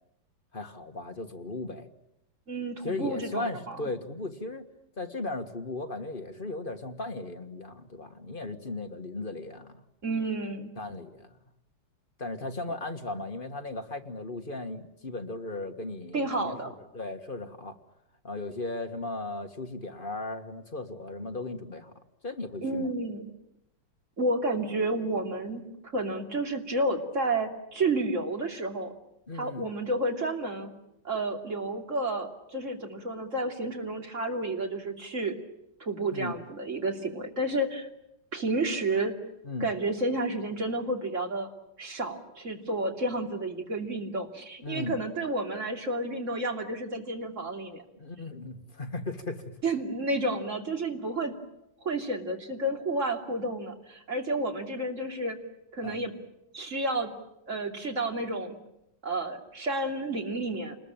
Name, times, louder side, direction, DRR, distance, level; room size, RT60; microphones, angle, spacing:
voice 1, 0.5-1.9 2.8-4.7 5.0-9.8 10.8-11.4 12.2-17.8 18.2-21.9 22.2-22.9 29.3-29.7 36.1-36.4 39.4-39.7 44.6-45.0 48.0-49.5 55.8-56.0, left 2 dB, 30° left, 6 dB, 1.7 m, -36 dB
voice 2, 2.5-3.8 10.0-10.7 16.1-16.7 22.6-23.3 24.2-25.6 25.9-28.9 29.3-30.7 31.0-35.4 35.8-37.9 38.3-39.1 39.6-41.5 41.8-47.8 49.6-51.3 51.8-55.4 55.7-56.1 56.5-57.1 57.5-58.6 59.0-60.8, right 2 dB, 40° right, 3 dB, 3.2 m, -31 dB
29.0 x 21.0 x 8.9 m, 0.84 s
omnidirectional pair, 2.1 m